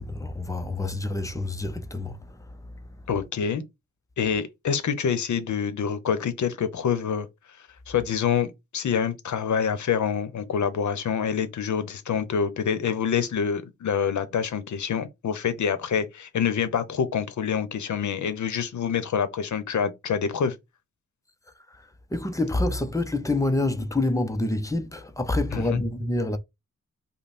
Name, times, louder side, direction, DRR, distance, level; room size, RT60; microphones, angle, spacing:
voice 1, 0.0-2.2 22.1-26.4, left 2 dB, 10° left, 0.6 m, -27 dB
voice 2, 3.1-3.6 4.2-7.3 7.9-20.5 25.5-25.8, left 7 dB, 75° left, 0.9 m, -26 dB
5.5 x 2.2 x 4.2 m
wide cardioid pair, 170°, 30 cm